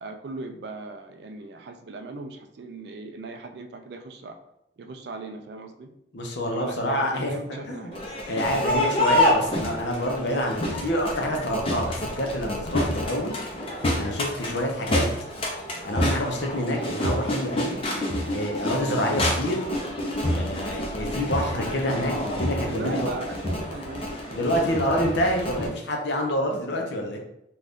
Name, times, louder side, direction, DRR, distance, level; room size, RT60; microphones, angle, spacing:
voice 1, 0.0-4.4 4.8-5.9 6.5-8.1 14.4-14.7 22.6-25.3, right 3 dB, 65° right, 6 dB, 0.3 m, -38 dB
voice 2, 6.1-7.9 8.3-13.4 14.0-15.0 15.8-17.8 18.3-19.7 20.3-23.1 24.3-27.2, equal, 75° left, 1 dB, 0.6 m, -27 dB
Crowd, 7.9-25.7, left 1 dB, 30° left, 0.5 m, -28 dB
2.6 x 2.3 x 3.4 m, 0.80 s
head